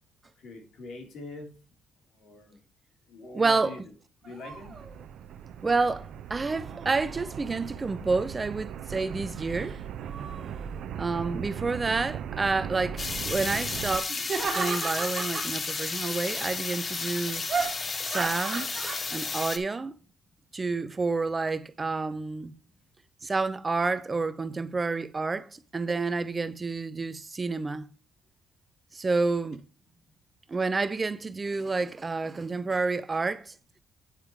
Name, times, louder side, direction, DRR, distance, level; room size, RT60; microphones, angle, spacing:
voice 1, 0.4-1.5 2.1-2.6 3.1-3.8 4.2-4.7, left 3 dB, 70° left, 3.2 m, -43 dB
voice 2, 3.3-3.8 5.6-9.8 11.0-14.2 14.6-17.4 18.0-18.8 19.1-20.0 20.5-22.5 23.2-27.9 28.9-29.6 30.5-33.5, right 3 dB, 30° right, 0.6 m, -29 dB
sound 1, 4.2-5.0 6.3-8.0 9.3-9.8 10.1-10.7 14.1-15.5 17.5-19.1, right 5 dB, 45° right, 2.0 m, -35 dB
sound 2, 4.5-14.0, right 8 dB, 75° right, 0.6 m, -38 dB
sound 3, 13.0-19.6, left 4 dB, 35° left, 1.0 m, -33 dB
9.1 x 4.9 x 4.7 m
cardioid pair, 90°, 0 cm